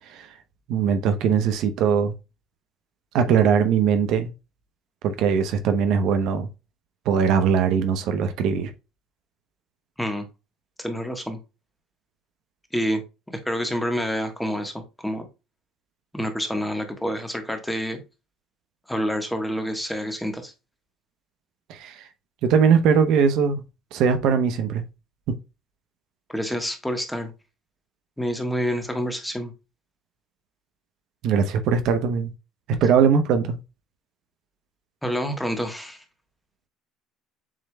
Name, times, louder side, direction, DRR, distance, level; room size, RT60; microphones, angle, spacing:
voice 1, 0.7-2.1 3.1-4.3 5.0-6.5 7.1-8.7 21.7-21.9 22.4-23.6 23.9-24.8 25.3-25.4 31.2-32.3 32.8-33.6, right 7 dB, 65° right, 0.8 m, -20 dB
voice 2, 10.8-11.4 12.7-13.0 13.4-15.3 16.1-18.0 18.9-20.5 26.3-27.3 28.2-29.5 35.0-36.0, equal, 5° left, 1.2 m, -28 dB
7.4 x 3.2 x 2.2 m
supercardioid pair, 105°, 0 cm